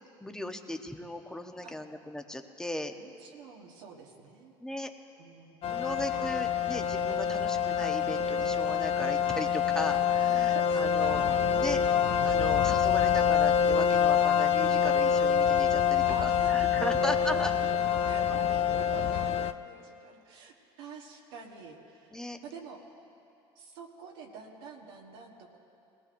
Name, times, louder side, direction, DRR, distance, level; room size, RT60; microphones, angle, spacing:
voice 1, 0.2-2.9 4.6-4.9 5.7-11.8 12.2-17.5 22.1-22.4, left 1 dB, 5° left, 5 dB, 0.9 m, -37 dB
voice 2, 3.0-4.5 5.2-5.8 9.8-10.0 10.5-11.2 16.1-17.4 17.7-22.8 23.5-25.6, right 5 dB, 85° right, -1 dB, 1.5 m, -47 dB
sound 1, 5.6-19.5, left 8 dB, 50° left, 0.4 m, -26 dB
21.0 x 18.0 x 2.6 m, 2.6 s
supercardioid pair, 85°, 13 cm